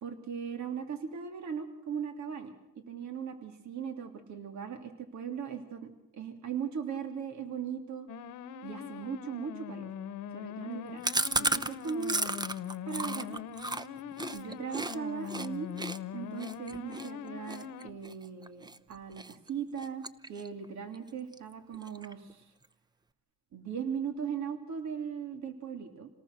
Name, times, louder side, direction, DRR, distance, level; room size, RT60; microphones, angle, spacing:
voice 1, 0.0-8.1 8.6-9.9 10.3-11.0 11.4-12.3 12.9-13.4 14.3-15.7 16.1-22.5 23.5-26.1, right 7 dB, 65° right, 6 dB, 2.8 m, -38 dB
sound 1, 8.1-17.9, left 8 dB, 80° left, 1.1 m, -42 dB
Chewing mastication, 11.0-15.0 15.3-15.5 15.8-18.8 19.2-19.5 19.8-20.7 20.9-21.0 21.3-21.4 21.7-22.3, right 2 dB, 15° right, 0.8 m, -34 dB
27.5 x 18.5 x 6.7 m, 0.83 s
cardioid pair, 90°, 30 cm